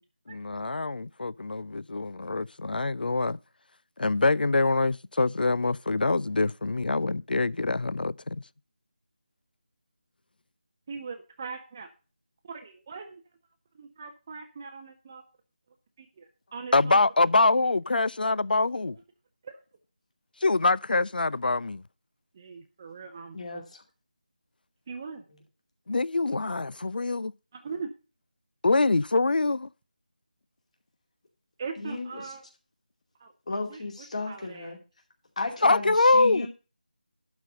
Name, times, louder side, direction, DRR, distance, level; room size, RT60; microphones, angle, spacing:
voice 1, 0.3-3.4 4.0-8.4 16.7-19.0 20.4-21.8 25.9-27.3 28.6-29.7 35.6-36.5, left 3 dB, 75° left, 0.3 m, -24 dB
voice 2, 10.9-11.9 12.4-13.2 13.7-15.2 16.0-17.0 19.4-19.6 22.3-23.6 24.9-25.2 27.5-27.9 31.6-32.4 33.2-33.8 34.3-34.7, right 5 dB, 20° right, 0.6 m, -40 dB
voice 3, 23.3-23.8 31.8-32.3 33.5-34.8 35.4-36.5, left 3 dB, 45° left, 2.4 m, -34 dB
11.5 x 4.2 x 6.5 m
figure-of-eight pair, 170°, 5 cm